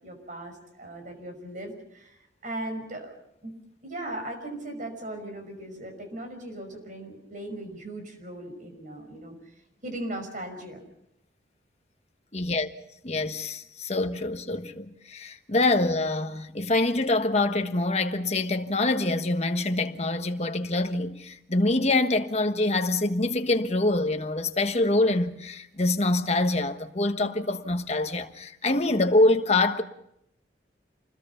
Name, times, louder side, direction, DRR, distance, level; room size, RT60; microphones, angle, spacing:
voice 1, 0.0-3.1 3.4-3.5 3.8-9.4 9.8-10.8, right 1 dB, 45° right, 5.6 m, -38 dB
voice 2, 12.3-12.7 13.0-29.8, left 2 dB, 35° left, 1.3 m, -25 dB
27.5 x 21.0 x 5.7 m
head